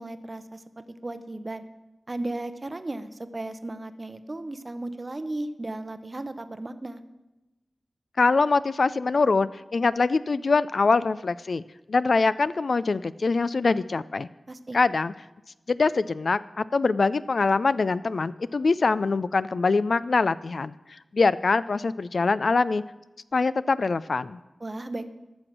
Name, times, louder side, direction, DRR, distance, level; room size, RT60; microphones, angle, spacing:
voice 1, 0.0-1.6 2.1-7.0 14.5-14.8 24.6-25.1, right 2 dB, 35° right, 11 dB, 0.7 m, -35 dB
voice 2, 8.2-11.6 11.9-14.3 14.7-15.1 15.7-20.8 21.1-22.8 23.3-24.4, left 4 dB, 65° left, 16 dB, 0.3 m, -23 dB
14.0 x 6.1 x 6.1 m, 1.1 s
wide cardioid pair, 85°, 0 cm